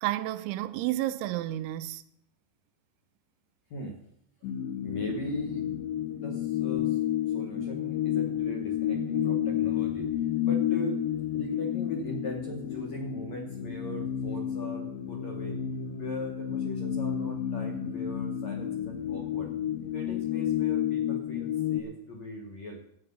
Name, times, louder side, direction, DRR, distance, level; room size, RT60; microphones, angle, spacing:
voice 1, 0.0-2.0, right 15 dB, 90° right, 3.1 m, -31 dB
sound 1, 4.4-21.8, left 10 dB, 80° left, 2.1 m, -31 dB
voice 2, 4.8-5.7 6.1-7.0 7.3-10.2 10.4-11.0 11.3-15.6 16.0-19.5 19.9-22.8, equal, 65° left, 1.8 m, -39 dB
14.0 x 9.1 x 5.5 m
omnidirectional pair, 5.3 m